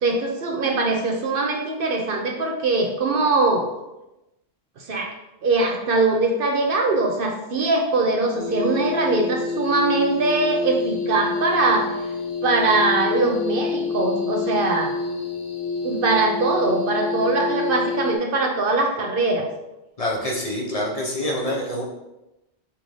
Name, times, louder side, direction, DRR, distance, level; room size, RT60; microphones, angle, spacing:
voice 1, 0.0-3.7 4.9-5.1 5.4-11.9 12.4-14.9 15.8-19.5, right 3 dB, 60° right, 2 dB, 0.8 m, -22 dB
sound 1, 8.3-18.2, left 4 dB, 70° left, 1.1 m, -27 dB
voice 2, 20.0-21.8, left 1 dB, 40° left, -3 dB, 0.8 m, -26 dB
5.7 x 2.6 x 3.1 m, 0.94 s
omnidirectional pair, 1.1 m